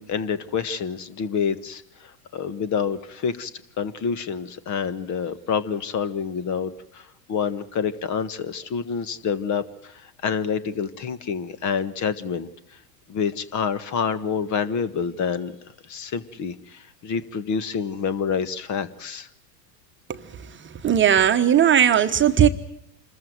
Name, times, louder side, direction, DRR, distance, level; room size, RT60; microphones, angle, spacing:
voice 1, 0.0-3.5 3.8-12.8 13.1-15.6 15.8-19.3, left 6 dB, 35° left, 15 dB, 1.6 m, -28 dB
voice 2, 20.6-22.5, right 9 dB, 25° right, 7 dB, 1.2 m, -18 dB
26.5 x 14.5 x 9.5 m, 0.83 s
hypercardioid pair, 100°, 50 cm